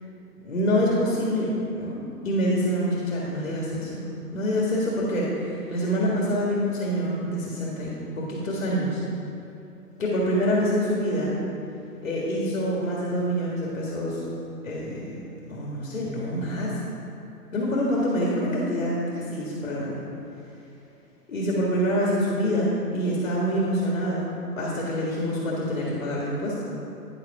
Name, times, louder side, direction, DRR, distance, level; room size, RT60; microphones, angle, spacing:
voice 1, 0.4-2.0 2.2-9.0 10.0-11.3 12.0-14.2 14.6-15.2 15.5-16.8 17.5-20.0 21.3-26.6, equal, 55° left, -5 dB, 1.8 m, -26 dB
10.0 x 5.0 x 4.8 m, 2.7 s
hypercardioid pair, 160°, 47 cm